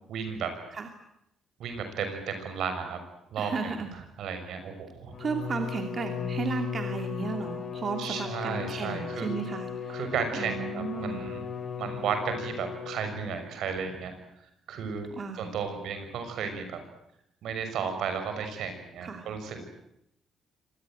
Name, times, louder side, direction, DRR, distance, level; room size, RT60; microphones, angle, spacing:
voice 1, 0.1-0.5 1.6-3.0 3.3-5.2 8.0-9.3 9.9-11.5 11.8-14.1 14.7-15.1 15.4-16.8 17.4-19.7, right 6 dB, 75° right, 7 dB, 6.2 m, -34 dB
voice 2, 3.4-3.9 5.2-10.1 10.3-11.2 15.2-15.5 19.0-19.3, right 4 dB, 45° right, 5 dB, 2.7 m, -34 dB
Bowed string instrument, 5.1-13.4, left 7 dB, 60° left, 3.6 m, -36 dB
25.5 x 19.5 x 9.3 m, 0.80 s
cardioid pair, 90°, 0 cm